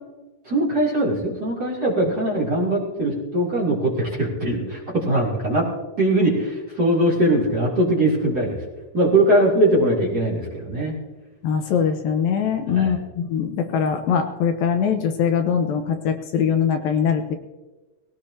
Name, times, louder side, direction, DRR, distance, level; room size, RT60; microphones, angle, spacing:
voice 1, 0.4-5.7 6.0-8.6 8.9-10.9 12.7-12.9, right 1 dB, 25° right, -5 dB, 3.2 m, -21 dB
voice 2, 11.4-17.3, left 7 dB, 75° left, 5 dB, 2.7 m, -22 dB
21.0 x 17.0 x 2.9 m, 1.2 s
omnidirectional pair, 4.3 m